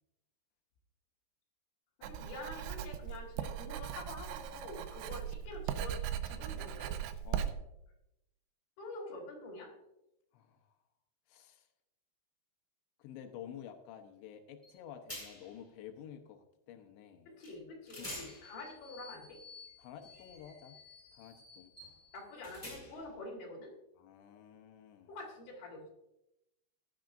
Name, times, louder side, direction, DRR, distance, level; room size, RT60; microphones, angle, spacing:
voice 1, 2.0-6.0 6.2-6.9 8.8-9.7 17.3-19.4 22.1-23.7 25.1-25.9, left 2 dB, 50° left, -2 dB, 4.6 m, -47 dB
Writing, 2.0-7.5, right 9 dB, 85° right, 2.9 m, -39 dB
voice 2, 7.2-7.7 10.3-10.7 11.3-11.7 13.0-17.3 18.0-18.3 19.8-20.8 21.1-21.7 24.0-25.1, left 9 dB, 85° left, 6 dB, 3.2 m, -51 dB
sound 1, 14.6-14.8 15.1-15.6 17.4-17.5 17.9-23.2, left 1 dB, 5° left, 4.3 m, -50 dB
16.5 x 11.5 x 2.6 m, 0.87 s
omnidirectional pair, 5.0 m